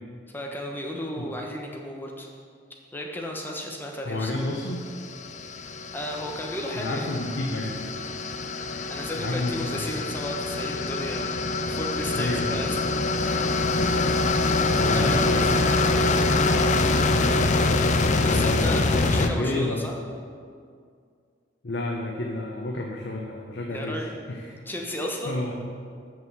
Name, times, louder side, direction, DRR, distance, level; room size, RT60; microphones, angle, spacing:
voice 1, 0.3-2.3 2.9-4.3 5.9-7.1 8.9-12.8 13.2-13.5 14.5-15.5 18.2-20.0 23.7-24.1 24.7-25.4, equal, 10° left, 0 dB, 1.1 m, -34 dB
voice 2, 4.0-4.8 6.7-7.8 8.6-9.6 12.2-12.6 13.8-14.1 14.8-15.7 18.2-18.8 19.2-19.8 21.6-24.6 25.3-25.5, left 2 dB, 65° left, 0 dB, 0.8 m, -30 dB
sound 1, 4.6-19.3, left 3 dB, 40° left, 0.5 m, -24 dB
6.3 x 6.2 x 7.3 m, 2.1 s
head